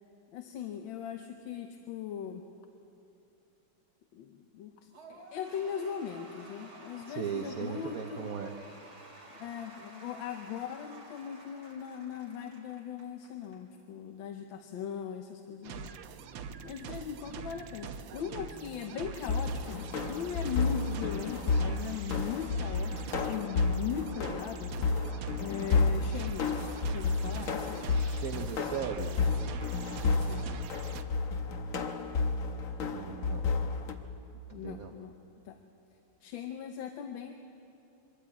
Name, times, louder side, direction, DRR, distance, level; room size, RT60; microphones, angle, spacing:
voice 1, 0.3-2.4 4.1-8.3 9.3-15.9 16.6-25.1 25.4-27.9 30.1-30.6 34.5-35.1 35.4-35.6 36.2-37.3, left 8 dB, 75° left, 6 dB, 1.6 m, -39 dB
Cheering / Applause / Crowd, 4.9-13.6, right 2 dB, 30° right, 3.2 m, -52 dB
voice 2, 7.1-8.6 27.9-29.1 32.9-33.4 34.5-34.9, right 7 dB, 55° right, 4 dB, 1.1 m, -37 dB
sound 1, 15.6-31.0, right 6 dB, 75° right, 1.5 m, -44 dB
sound 2, 19.2-33.9, left 4 dB, 50° left, 1.1 m, -31 dB
23.5 x 13.5 x 8.6 m, 2.9 s
omnidirectional pair, 2.2 m